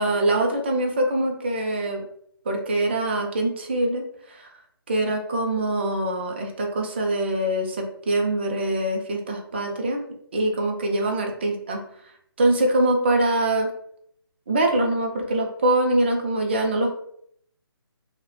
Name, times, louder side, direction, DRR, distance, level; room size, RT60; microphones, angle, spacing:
voice 1, 0.0-2.0 2.5-4.5 4.9-10.0 10.3-11.8 12.4-13.7 14.5-16.9, right 1 dB, 25° right, 2 dB, 0.4 m, -23 dB
2.8 x 2.1 x 2.2 m, 0.67 s
hypercardioid pair, 170°, 13 cm